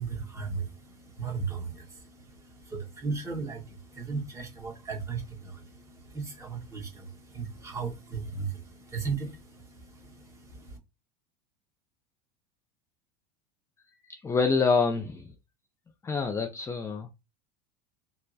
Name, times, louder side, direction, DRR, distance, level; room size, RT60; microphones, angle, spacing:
voice 1, 0.0-10.8, right 5 dB, 15° right, 1.5 m, -36 dB
voice 2, 14.2-15.3 16.0-17.1, left 4 dB, 15° left, 0.4 m, -26 dB
4.3 x 2.0 x 2.7 m
hypercardioid pair, 85°, 19 cm